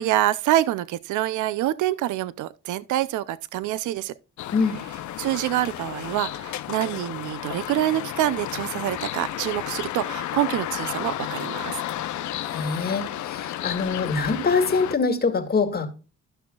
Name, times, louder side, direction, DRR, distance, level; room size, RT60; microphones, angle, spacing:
voice 1, 0.0-4.1 5.2-11.8, right 14 dB, 80° right, 0.5 m, -26 dB
sound 1, 4.4-15.0, left 12 dB, 70° left, 0.7 m, -32 dB
voice 2, 12.5-15.9, left 4 dB, 30° left, 2.1 m, -24 dB
13.0 x 6.1 x 2.3 m
cardioid pair, 90°, 30 cm